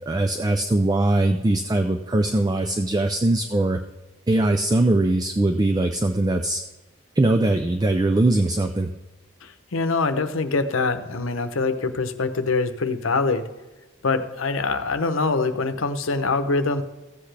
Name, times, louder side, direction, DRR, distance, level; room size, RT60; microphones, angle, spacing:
voice 1, 0.1-3.8 4.3-6.6 7.2-8.9, right 2 dB, 20° right, 7 dB, 0.4 m, -21 dB
voice 2, 9.4-13.5 14.0-16.8, left 3 dB, 85° left, 9 dB, 0.8 m, -24 dB
14.5 x 8.0 x 3.3 m, 1.1 s
head